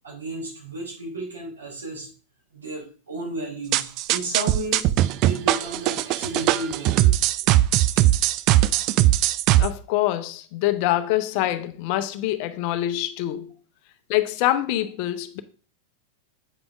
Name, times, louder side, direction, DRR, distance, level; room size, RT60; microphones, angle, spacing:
voice 1, 0.0-2.1 2.5-4.9 5.2-7.2 7.4-7.6 8.0-8.1 8.9-9.0, right 2 dB, 75° right, 3.6 m, -33 dB
sound 1, 3.7-9.7, right 14 dB, 40° right, 0.3 m, -20 dB
voice 2, 9.6-13.5 14.1-15.4, left 14 dB, 45° left, 0.6 m, -25 dB
8.2 x 5.2 x 3.4 m
figure-of-eight pair, 90°, 0 cm